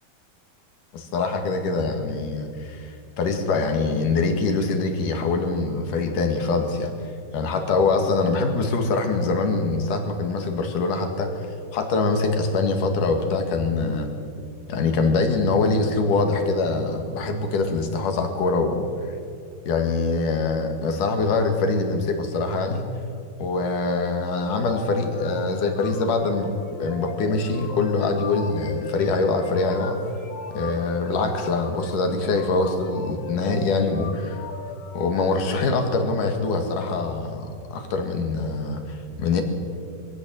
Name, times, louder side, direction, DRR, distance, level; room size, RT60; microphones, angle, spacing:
voice 1, 0.9-6.9 7.3-11.3 11.7-14.1 14.7-19.1 19.6-22.9 23.4-26.5 26.8-30.0 30.5-34.4 34.9-39.4, left 3 dB, 60° left, 5 dB, 3.3 m, -24 dB
sound 1, 24.6-35.2, left 4 dB, 85° left, 4.2 m, -38 dB
23.0 x 16.0 x 7.7 m, 2.4 s
omnidirectional pair, 4.5 m